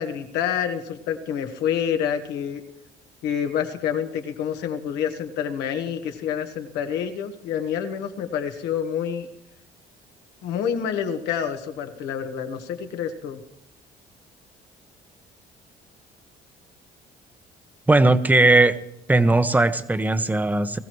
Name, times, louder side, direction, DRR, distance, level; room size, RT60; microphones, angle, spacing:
voice 1, 0.0-2.6 3.2-9.3 10.4-13.4, left 8 dB, 85° left, 6 dB, 1.5 m, -28 dB
voice 2, 17.9-18.8 19.1-20.8, right 2 dB, 10° right, 11 dB, 0.8 m, -18 dB
22.0 x 15.0 x 3.2 m, 0.80 s
cardioid pair, 110°, 17 cm